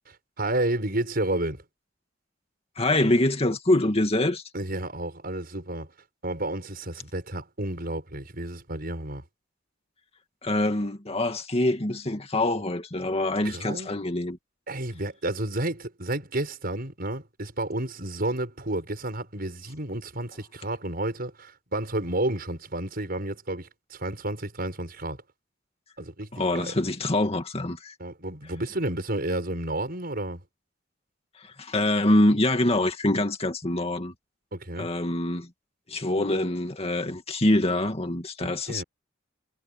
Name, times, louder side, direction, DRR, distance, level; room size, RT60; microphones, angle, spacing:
voice 1, 0.1-1.6 4.5-5.9 6.2-9.2 13.4-13.9 14.7-25.2 26.0-26.3 26.5-26.7 28.0-30.4 34.5-34.9 38.4-38.8, right 1 dB, 50° right, 6.5 m, -31 dB
voice 2, 2.8-4.4 10.4-14.4 26.3-27.9 31.4-34.1 34.8-35.5 35.9-38.8, left 1 dB, 30° left, 2.3 m, -25 dB
head